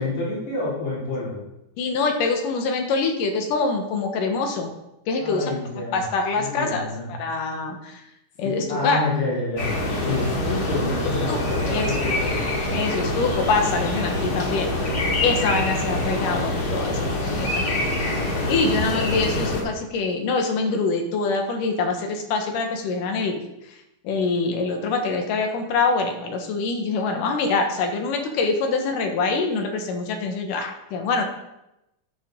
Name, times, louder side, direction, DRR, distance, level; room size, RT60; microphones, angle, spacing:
voice 1, 0.0-1.4 5.2-6.1 6.4-7.1 8.4-9.7 10.0-12.3, left 2 dB, 70° left, -7 dB, 4.5 m, -28 dB
voice 2, 1.8-4.7 5.1-8.0 8.4-9.0 11.3-12.1 12.7-14.9 15.2-17.6 18.5-23.4 24.0-31.2, left 4 dB, 85° left, 4 dB, 2.8 m, -25 dB
sound 1, 9.6-19.6, left 1 dB, 40° left, 3.3 m, -25 dB
12.0 x 7.0 x 3.8 m, 0.89 s
omnidirectional pair, 3.7 m